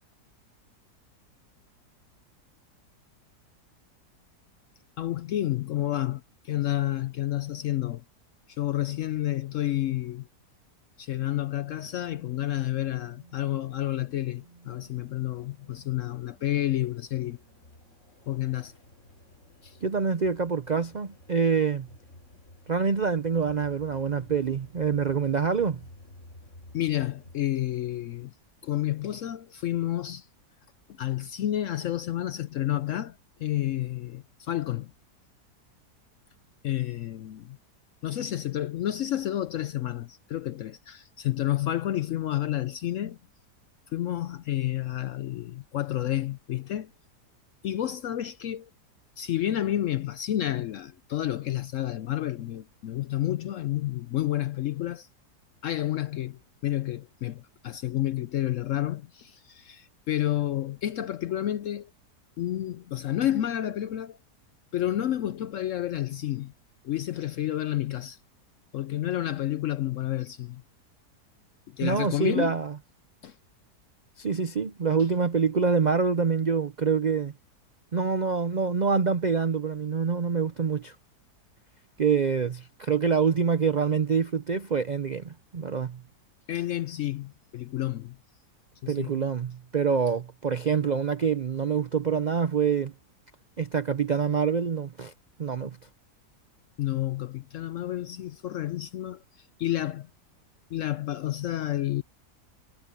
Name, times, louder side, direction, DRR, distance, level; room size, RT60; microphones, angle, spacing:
voice 1, 5.0-8.0 8.5-10.3 11.0-17.4 18.3-18.7 19.6-19.8 26.7-28.3 28.6-30.3 30.9-34.9 36.6-37.6 38.0-43.2 43.9-46.9 47.6-48.7 49.2-55.1 55.6-61.9 62.4-64.2 64.7-66.5 66.8-68.2 68.7-70.6 71.7-72.5 73.2-73.3 86.5-88.2 88.8-89.2 96.8-100.1 100.7-102.0, left 13 dB, 70° left, 0.7 m, -30 dB
sound 1, 11.3-27.4, left 1 dB, 45° left, 4.9 m, -53 dB
voice 2, 19.8-21.9 22.7-25.8 71.8-72.8 74.2-77.3 77.9-80.9 82.0-86.0 88.9-92.9 93.6-95.1 95.4-95.8, right 6 dB, 70° right, 0.4 m, -26 dB
omnidirectional pair, 1.8 m